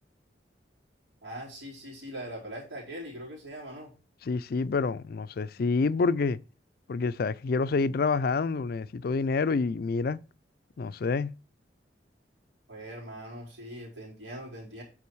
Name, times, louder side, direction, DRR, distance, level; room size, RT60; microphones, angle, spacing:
voice 1, 1.2-3.9 12.7-14.8, equal, 90° right, 4.2 m, -41 dB
voice 2, 4.3-6.4 6.9-10.2 10.8-11.3, left 4 dB, 55° left, 0.4 m, -27 dB
8.5 x 4.9 x 4.6 m
head